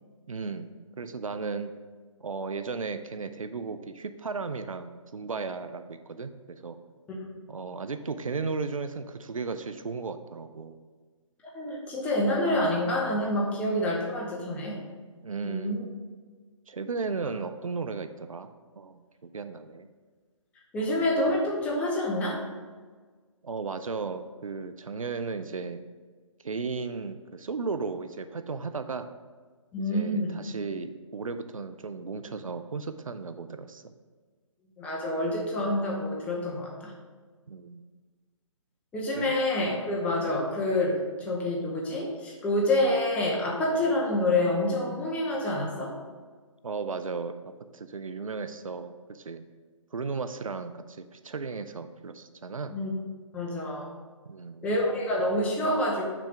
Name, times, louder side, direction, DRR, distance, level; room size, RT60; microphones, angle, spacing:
voice 1, 0.3-1.7 2.2-6.8 7.5-10.8 15.2-15.9 16.7-19.9 20.9-21.0 23.4-25.8 26.4-29.1 29.8-33.9 37.5-37.8 39.1-39.4 46.6-47.3 47.7-49.4 49.9-52.8 54.2-54.7, right 4 dB, 90° right, 9 dB, 0.5 m, -35 dB
voice 2, 11.5-14.8 15.4-15.8 20.7-22.4 29.7-30.4 34.8-36.9 38.9-45.9 52.7-52.9 53.3-53.9 54.6-56.0, left 1 dB, 10° left, -2 dB, 0.7 m, -27 dB
6.0 x 3.3 x 5.8 m, 1.5 s
figure-of-eight pair, 145°, 17 cm